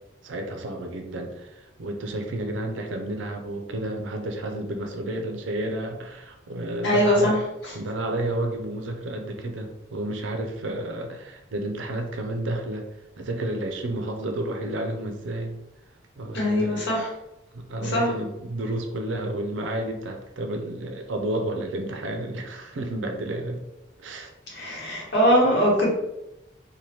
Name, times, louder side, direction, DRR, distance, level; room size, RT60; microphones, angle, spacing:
voice 1, 0.2-7.4 7.7-12.8 13.2-15.5 16.2-16.8 17.5-23.6 24.0-24.3, right 1 dB, 80° right, 4 dB, 0.5 m, -31 dB
voice 2, 6.8-7.4 16.3-17.1 17.8-18.1 24.5-25.9, equal, 70° left, -3 dB, 1.0 m, -21 dB
2.8 x 2.2 x 3.2 m, 0.90 s
head